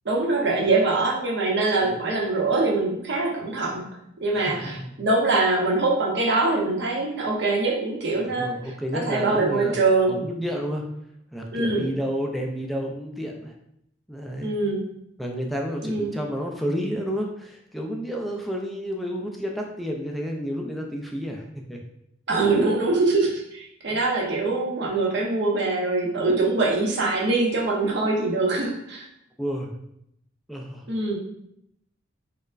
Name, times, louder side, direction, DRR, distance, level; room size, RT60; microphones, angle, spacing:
voice 1, 0.0-3.8 4.2-8.5 8.9-10.2 11.5-11.9 14.4-14.8 15.8-16.2 22.3-29.1 30.9-31.2, right 3 dB, 60° right, -2 dB, 0.7 m, -23 dB
voice 2, 4.3-4.9 8.3-9.8 10.1-10.9 11.3-13.5 14.1-14.5 15.2-21.8 23.9-24.0 29.4-29.7 30.5-30.9, equal, ahead, 0 dB, 0.3 m, -30 dB
4.3 x 2.0 x 2.5 m, 0.77 s
head